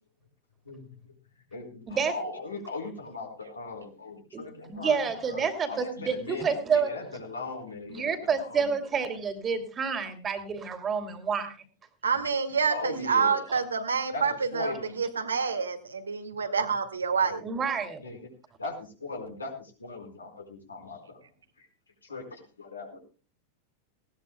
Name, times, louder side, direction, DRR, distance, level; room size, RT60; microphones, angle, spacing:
voice 1, 1.5-8.8 12.1-12.3 12.7-13.4 14.1-15.0 17.2-17.5 18.0-18.2 18.6-21.2 21.6-21.7 22.0-23.0, left 3 dB, 75° left, 3 dB, 4.4 m, -39 dB
voice 2, 4.3-6.9 7.9-11.6 13.5-13.6 17.4-18.0, right 6 dB, 25° right, 8 dB, 2.6 m, -29 dB
voice 3, 12.0-17.4, right 5 dB, 75° right, 7 dB, 2.0 m, -27 dB
19.5 x 17.0 x 2.2 m, 0.34 s
figure-of-eight pair, 90°, 0 cm